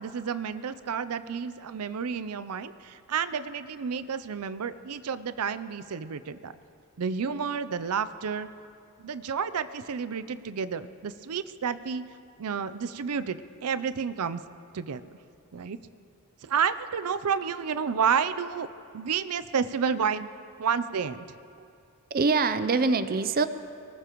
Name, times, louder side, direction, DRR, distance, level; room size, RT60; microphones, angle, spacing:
voice 1, 0.0-6.5 7.0-8.5 9.0-12.0 12.4-14.4 14.7-15.0 15.5-15.8 16.4-18.7 18.9-20.3 20.6-21.2, right 6 dB, 90° right, 13 dB, 0.5 m, -30 dB
voice 2, 22.1-23.5, right 4 dB, 40° right, 12 dB, 0.6 m, -24 dB
23.5 x 19.0 x 3.1 m, 2.5 s
head